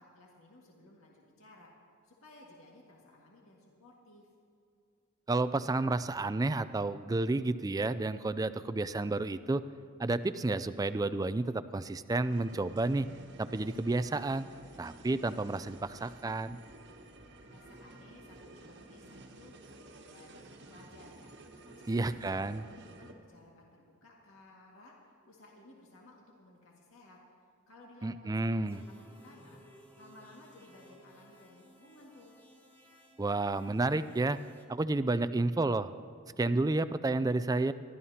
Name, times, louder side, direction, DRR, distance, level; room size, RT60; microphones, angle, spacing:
voice 1, 0.0-1.7 2.0-4.3 17.5-19.5 20.0-21.3 21.6-27.2 27.7-32.3, left 1 dB, 70° left, -3 dB, 2.0 m, -57 dB
voice 2, 5.3-9.6 10.0-13.1 13.4-14.5 14.8-16.6 21.9-22.6 28.0-28.8 33.2-34.4 34.7-35.9 36.4-37.7, right 2 dB, 15° right, 13 dB, 0.3 m, -31 dB
sound 1, 12.2-23.1, right 2 dB, 55° right, 1.3 m, -53 dB
sound 2, 28.6-34.7, equal, 10° left, 1.4 m, -59 dB
26.0 x 12.5 x 2.9 m, 2.4 s
head